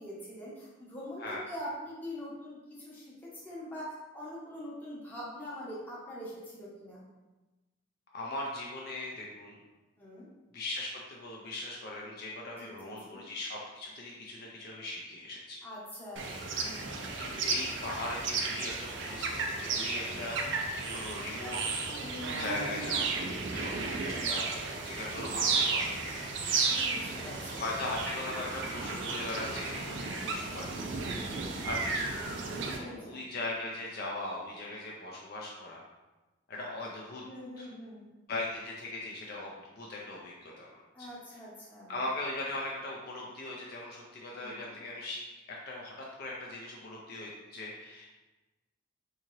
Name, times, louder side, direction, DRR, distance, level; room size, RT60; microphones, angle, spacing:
voice 1, 0.0-3.0 3.3-7.0 10.0-10.3 12.6-13.2 15.6-17.0 22.0-22.6 26.7-27.6 30.1-30.6 31.1-31.5 32.7-33.2 37.2-38.0 40.9-41.9 44.4-44.7, equal, 10° left, -7 dB, 0.8 m, -44 dB
voice 2, 8.1-9.6 10.5-15.6 17.2-18.7 19.0-21.8 22.4-26.3 27.5-30.9 31.6-32.4 32.7-35.8 36.5-37.2 37.6-37.7 38.3-41.1 41.9-48.1, left 2 dB, 45° left, -3 dB, 0.4 m, -39 dB
sound 1, 16.2-32.8, right 4 dB, 60° right, 0.4 m, -34 dB
3.6 x 2.8 x 3.0 m, 1.1 s
head